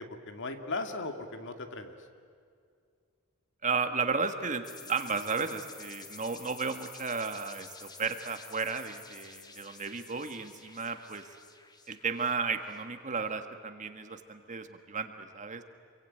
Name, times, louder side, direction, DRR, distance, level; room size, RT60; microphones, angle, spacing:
voice 1, 0.0-2.1, left 3 dB, 55° left, 7 dB, 2.2 m, -38 dB
voice 2, 3.6-11.3 11.9-15.6, right 5 dB, 35° right, 8 dB, 1.5 m, -34 dB
sound 1, 4.6-13.2, left 4 dB, 20° left, 1.6 m, -50 dB
27.0 x 23.0 x 9.3 m, 2.3 s
head